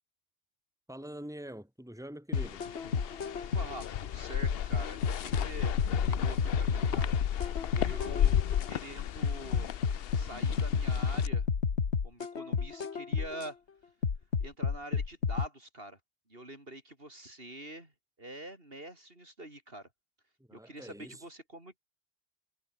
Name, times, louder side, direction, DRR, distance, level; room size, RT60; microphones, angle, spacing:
voice 1, 0.9-2.7 20.4-21.3, right 1 dB, 5° right, 3.6 m, -45 dB
sound 1, 2.3-3.9 4.4-8.7 9.2-13.5 14.0-15.5, left 5 dB, 90° left, 1.8 m, -31 dB
sound 2, 2.3-11.3, left 10 dB, 65° left, 0.8 m, -34 dB
voice 2, 3.4-7.2 7.7-9.7 10.1-11.5 12.0-13.6 14.4-16.0 16.3-17.9 18.2-19.9 20.5-21.8, right 1 dB, 60° right, 6.5 m, -45 dB
omnidirectional pair, 1.1 m